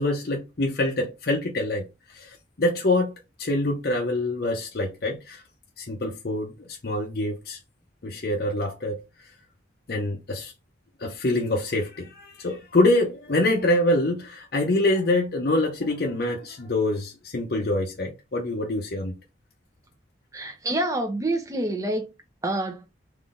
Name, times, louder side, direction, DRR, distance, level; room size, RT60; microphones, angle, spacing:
voice 1, 0.0-1.9 2.1-3.1 3.4-5.4 5.8-7.6 8.0-9.0 9.9-10.5 11.0-19.2, left 1 dB, 55° left, 0.7 m, -25 dB
voice 2, 20.3-22.1 22.4-22.9, right 1 dB, 15° right, 0.7 m, -27 dB
3.8 x 3.1 x 3.7 m
head